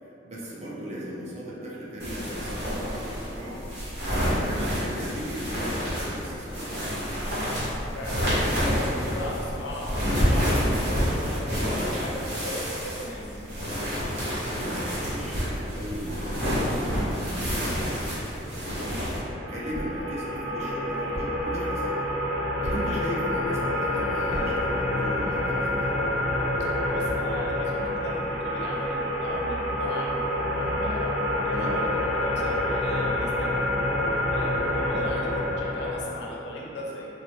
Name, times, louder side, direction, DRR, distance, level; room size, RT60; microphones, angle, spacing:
voice 1, 0.0-3.7 4.1-7.1 11.5-11.7 14.3-18.1 18.5-22.0 22.4-25.9 31.5-31.8, equal, 35° right, -6 dB, 0.5 m, -37 dB
sound 1, 2.0-19.2, equal, 55° right, 1.2 m, -28 dB
voice 2, 7.9-13.4 18.8-19.0 22.8-23.0 26.9-33.7 34.1-37.1, left 1 dB, 60° left, -3 dB, 0.5 m, -37 dB
sound 2, 19.1-35.9, left 1 dB, 80° right, 0.6 m, -27 dB
Thump thud, 19.7-20.1 21.1-21.5 22.6-23.0 24.3-24.7, equal, ahead, 1.1 m, -35 dB
4.1 x 2.0 x 3.1 m, 3.0 s
head